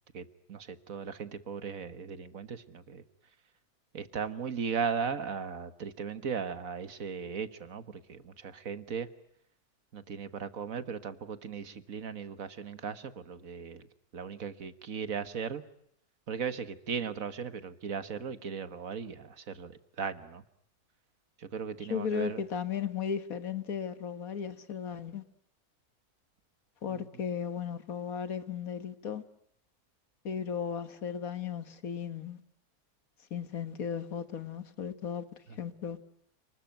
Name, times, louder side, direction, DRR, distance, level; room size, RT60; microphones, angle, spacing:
voice 1, 0.1-3.0 3.9-9.1 9.9-13.9 14.1-15.6 16.3-20.4 21.4-22.4 26.9-27.1 35.5-35.6, right 6 dB, 65° right, 1.7 m, -37 dB
voice 2, 21.9-25.2 26.8-29.2 30.2-32.4 33.3-35.2 35.6-36.0, left 7 dB, 70° left, 1.8 m, -35 dB
29.0 x 20.5 x 9.1 m
omnidirectional pair, 1.6 m